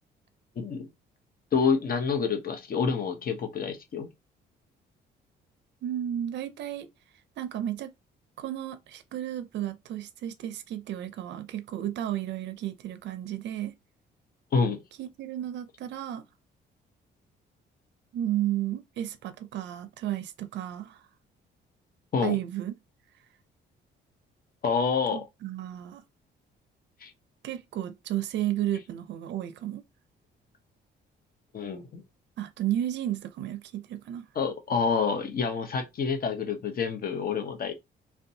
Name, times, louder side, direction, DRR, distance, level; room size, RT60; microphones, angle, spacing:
voice 1, 0.6-0.9 1.5-4.1 14.5-14.8 22.1-22.4 24.6-25.2 27.0-27.1 31.5-32.0 34.3-37.7, left 5 dB, 50° left, 0.8 m, -27 dB
voice 2, 5.8-6.9 7.4-7.9 8.4-13.7 15.0-16.3 18.1-21.0 22.2-22.7 25.1-26.0 27.4-29.8 32.4-34.3, right 12 dB, 65° right, 0.4 m, -33 dB
2.6 x 2.2 x 2.7 m
cardioid pair, 90°, 20 cm